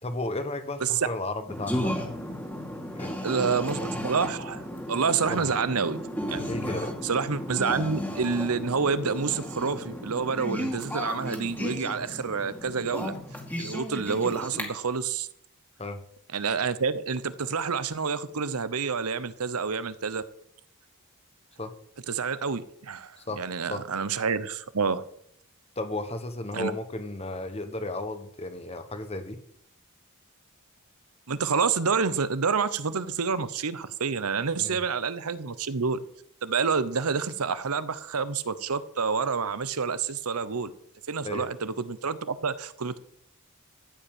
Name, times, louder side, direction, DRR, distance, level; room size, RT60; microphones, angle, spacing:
voice 1, 0.0-2.0 2.9-3.2 5.3-5.5 6.4-6.9 15.8-16.0 21.6-21.7 23.2-23.4 23.7-23.8 25.8-29.4 34.6-34.8 41.2-41.5, left 2 dB, 25° left, 9 dB, 1.2 m, -34 dB
sound 1, 1.5-14.6, equal, 10° left, 2.1 m, -34 dB
voice 2, 3.2-6.0 6.3-6.5 7.0-13.2 13.6-15.3 16.3-20.2 22.1-25.0 26.5-26.7 31.3-36.0 36.4-40.7 41.1-43.0, right 5 dB, 85° right, 15 dB, 0.9 m, -28 dB
14.0 x 5.4 x 8.9 m, 0.70 s
head